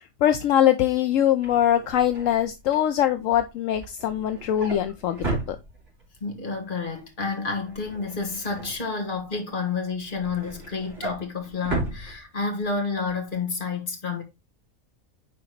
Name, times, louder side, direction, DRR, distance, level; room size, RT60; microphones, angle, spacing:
voice 1, 0.0-5.6, left 11 dB, 75° left, 1.0 m, -22 dB
Drawer open or close, 1.1-6.2 6.6-6.9 7.1-9.4 9.8-12.8 13.1-13.3 13.6-13.7, right 3 dB, 60° right, 3.1 m, -36 dB
voice 2, 6.2-14.2, left 4 dB, 40° left, 1.7 m, -30 dB
9.8 x 3.9 x 3.0 m
omnidirectional pair, 1.4 m